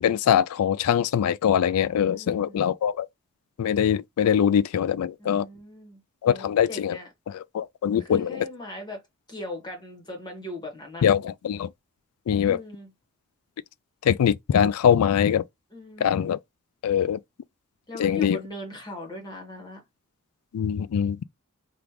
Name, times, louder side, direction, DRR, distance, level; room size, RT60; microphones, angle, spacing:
voice 1, 0.0-3.1 3.6-5.5 6.2-7.0 7.3-8.5 11.0-11.7 12.3-12.6 14.0-15.4 16.0-16.4 16.8-17.2 18.0-18.4 20.5-21.3, left 8 dB, 85° left, 0.3 m, -23 dB
voice 2, 2.0-2.6 5.2-6.0 6.3-7.1 7.9-9.0 9.3-11.1 12.3-12.9 15.7-16.2 17.9-19.8, left 2 dB, 20° left, 1.1 m, -39 dB
3.5 x 2.4 x 2.9 m
head